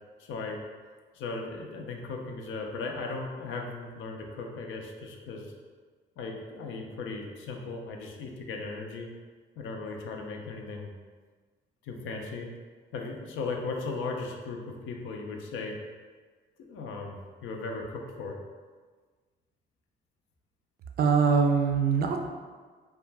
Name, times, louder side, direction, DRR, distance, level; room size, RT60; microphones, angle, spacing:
voice 1, 0.2-0.6 1.1-5.5 6.2-9.1 9.6-10.9 11.8-12.5 12.9-15.8 16.6-18.4, left 3 dB, 80° left, 1 dB, 0.4 m, -37 dB
voice 2, 21.0-22.3, right 5 dB, 50° right, 4 dB, 0.4 m, -23 dB
2.4 x 2.2 x 3.2 m, 1.5 s
cardioid pair, 90°, 20 cm